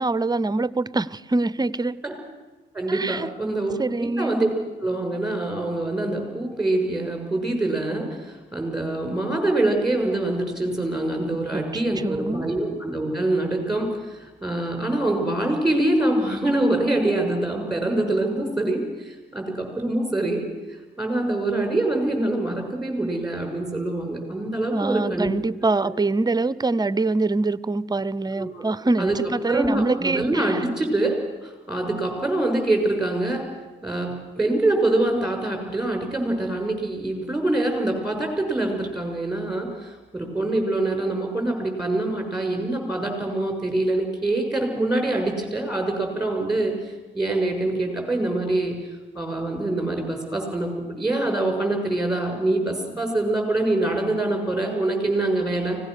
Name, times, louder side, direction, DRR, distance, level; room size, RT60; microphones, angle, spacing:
voice 1, 0.0-2.0 2.9-3.3 3.8-4.4 11.5-12.5 24.7-30.6, right 3 dB, 20° right, 19 dB, 0.6 m, -24 dB
voice 2, 2.7-4.5 4.8-20.5 21.0-25.3 28.3-28.7 29.0-29.2 29.5-31.1 31.4-33.5 33.8-48.8 49.1-55.8, right 2 dB, 5° right, 4 dB, 6.6 m, -25 dB
24.5 x 18.0 x 6.6 m, 1.2 s
cardioid pair, 90°, 20 cm